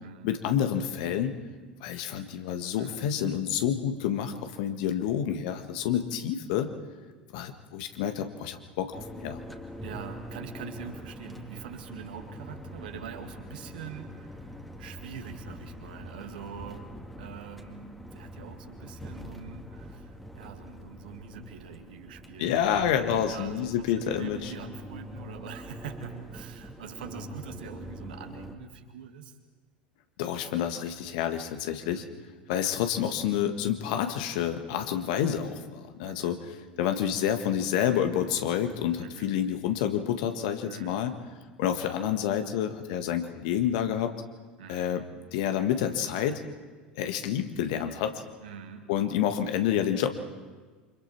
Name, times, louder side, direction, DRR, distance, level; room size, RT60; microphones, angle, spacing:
voice 1, 0.2-1.3 1.8-6.7 7.3-9.4 22.4-24.5 30.2-32.0 32.5-41.1 41.6-44.1 44.7-45.0 45.3-46.4 46.9-48.2 48.9-50.1, left 9 dB, 55° left, 7 dB, 1.6 m, -28 dB
voice 2, 2.8-3.1 9.8-22.6 23.1-29.4 31.8-32.1 36.0-36.4 39.0-39.3 40.7-41.0 44.6-44.8 48.4-48.9, right 7 dB, 65° right, 5 dB, 2.2 m, -44 dB
sound 1, 8.9-28.6, equal, ahead, 2.2 m, -44 dB
28.5 x 25.5 x 4.5 m, 1.4 s
figure-of-eight pair, 75°, 5 cm